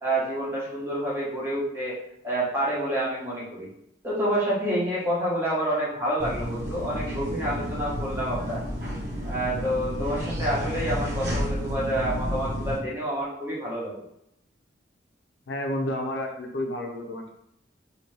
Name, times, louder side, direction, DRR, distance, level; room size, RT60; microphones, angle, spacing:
voice 1, 0.0-2.0 2.2-3.7 4.0-8.6 9.2-14.0, right 1 dB, 15° right, -6 dB, 1.0 m, -28 dB
sound 1, 6.2-12.8, equal, 60° right, 1.4 m, -31 dB
voice 2, 15.5-17.3, left 1 dB, 75° left, 2 dB, 0.5 m, -30 dB
2.8 x 2.7 x 3.3 m, 0.78 s
head